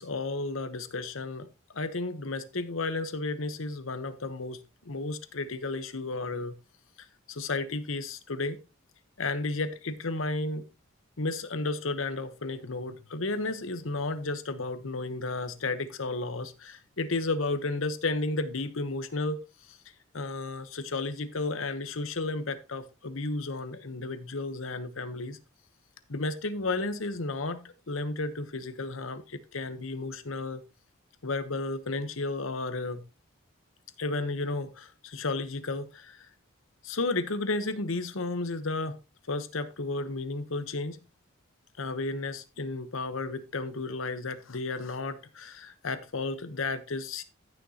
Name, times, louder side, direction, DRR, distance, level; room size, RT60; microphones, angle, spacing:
voice 1, 0.0-6.5 7.3-8.6 9.2-10.7 11.2-19.4 19.7-19.8 20.1-25.4 26.1-30.6 31.2-33.0 34.0-36.3 36.8-39.0 39.3-41.0 41.8-47.2, left 3 dB, 75° left, 1.0 m, -33 dB
14.5 x 6.5 x 2.9 m
head